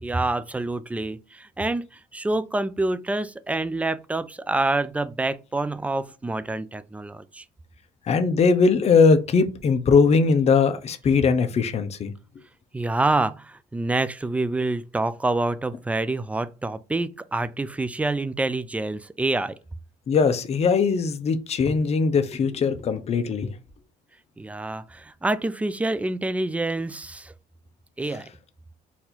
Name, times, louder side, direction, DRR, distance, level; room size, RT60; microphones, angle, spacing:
voice 1, 0.0-7.4 12.7-19.6 24.4-27.3 28.0-28.3, right 2 dB, 10° right, 0.3 m, -27 dB
voice 2, 8.1-12.1 20.1-23.5, left 5 dB, 40° left, 0.7 m, -20 dB
4.2 x 2.6 x 4.2 m
cardioid pair, 110°, 17 cm